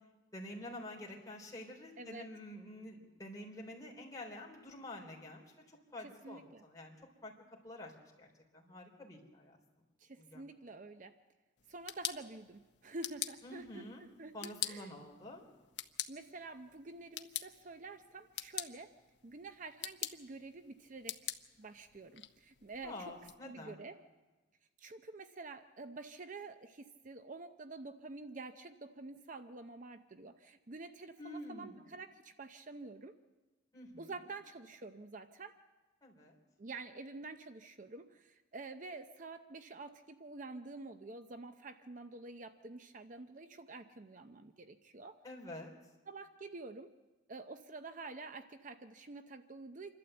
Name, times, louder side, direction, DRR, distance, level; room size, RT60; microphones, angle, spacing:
voice 1, 0.3-6.9 7.2-7.3 7.6-7.9 8.2-9.6 10.2-10.4 13.4-14.0 14.3-15.4 22.8-23.8 31.2-31.8 33.7-34.0 36.0-36.3 45.2-45.7, left 1 dB, 20° left, -2 dB, 3.6 m, -48 dB
voice 2, 2.0-2.3 6.0-6.7 10.0-11.1 11.7-14.9 16.1-18.9 19.2-21.3 21.6-23.2 23.4-24.0 24.8-33.1 34.0-35.6 36.6-45.2 46.1-46.9 47.3-49.9, right 3 dB, 40° right, 8 dB, 0.6 m, -48 dB
sound 1, 11.6-23.3, left 12 dB, 60° left, 0.9 m, -46 dB
27.5 x 12.0 x 7.9 m, 1.2 s
head